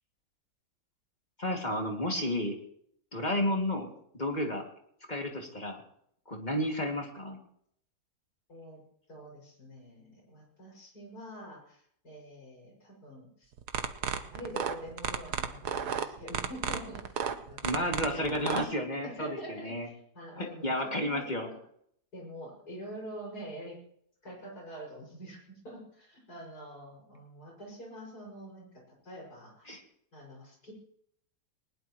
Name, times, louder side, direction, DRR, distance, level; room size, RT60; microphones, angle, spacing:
voice 1, 1.4-2.5 3.1-3.9 4.1-4.6 5.1-5.8 6.3-7.4 17.6-19.9 20.3-21.5 29.7-29.8, left 1 dB, 25° left, 1 dB, 2.6 m, -32 dB
voice 2, 8.5-8.8 9.1-13.5 14.0-17.2 17.5-18.3 19.0-21.6 22.1-23.8 24.2-29.8 30.1-30.7, equal, 70° left, 0 dB, 6.8 m, -46 dB
sound 1, 13.6-18.6, right 8 dB, 75° right, 1.5 m, -32 dB
20.0 x 19.5 x 3.1 m, 0.68 s
omnidirectional pair, 1.7 m